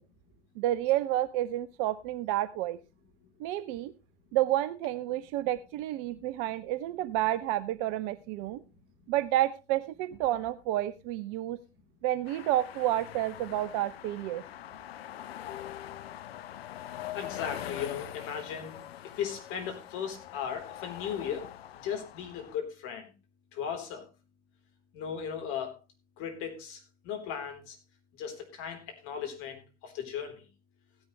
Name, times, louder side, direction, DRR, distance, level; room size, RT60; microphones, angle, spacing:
voice 1, 0.6-2.8 3.4-3.9 4.3-8.6 9.1-11.6 12.0-14.4, right 14 dB, 30° right, 15 dB, 0.5 m, -30 dB
sound 1, 12.3-22.6, left 11 dB, 60° left, 0.8 m, -43 dB
voice 2, 15.5-16.0 17.1-18.8 19.2-21.5 21.8-23.1 23.5-24.0 24.9-25.8 26.2-27.8 28.2-30.4, left 8 dB, 35° left, 4 dB, 3.9 m, -37 dB
15.5 x 10.5 x 3.2 m, 0.28 s
figure-of-eight pair, 100°, 35 cm